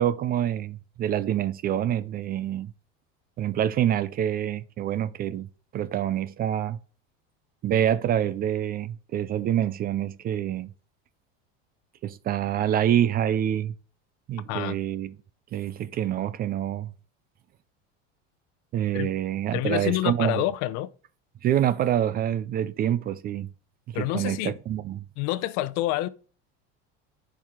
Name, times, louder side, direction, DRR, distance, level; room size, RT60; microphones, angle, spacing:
voice 1, 0.0-2.7 3.4-5.5 5.7-6.8 7.6-10.7 12.0-13.7 14.3-15.1 15.5-16.9 18.7-20.4 21.4-23.5 23.9-25.0, right 11 dB, 30° right, 0.4 m, -26 dB
voice 2, 14.5-14.8 18.9-19.1 19.5-20.9 23.9-24.6 25.2-26.1, left 15 dB, 60° left, 0.7 m, -28 dB
10.5 x 4.6 x 3.6 m
supercardioid pair, 140°, 31 cm